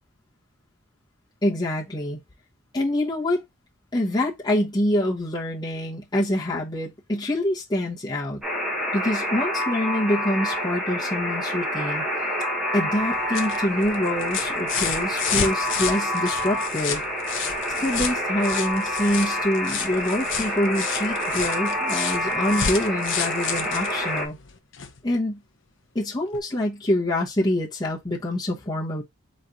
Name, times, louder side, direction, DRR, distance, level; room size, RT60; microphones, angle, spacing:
voice 1, 1.4-2.2 2.7-3.4 3.9-8.4 8.9-12.0 12.7-17.0 17.8-24.4 25.0-25.4 25.9-29.0, left 1 dB, 20° left, 1.1 m, -25 dB
Alarm, 8.4-24.3, left 1 dB, 5° right, 1.3 m, -27 dB
sound 1, 13.0-25.0 26.3-26.4, left 8 dB, 65° left, 0.7 m, -32 dB
4.2 x 3.2 x 3.8 m
head